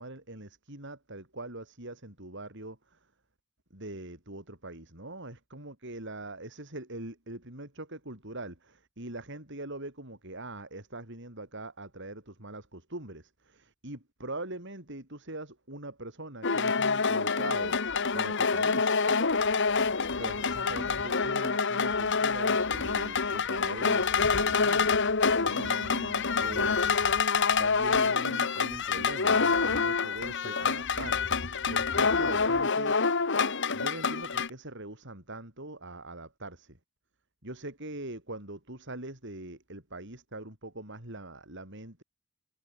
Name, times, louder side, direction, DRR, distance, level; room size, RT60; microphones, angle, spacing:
voice 1, 0.0-3.0 3.7-18.9 20.1-27.1 27.6-31.2 31.7-33.0 33.7-36.8 37.4-42.0, right 2 dB, 55° right, 6.9 m, -42 dB
sound 1, 16.4-34.5, left 5 dB, 55° left, 1.6 m, -27 dB
head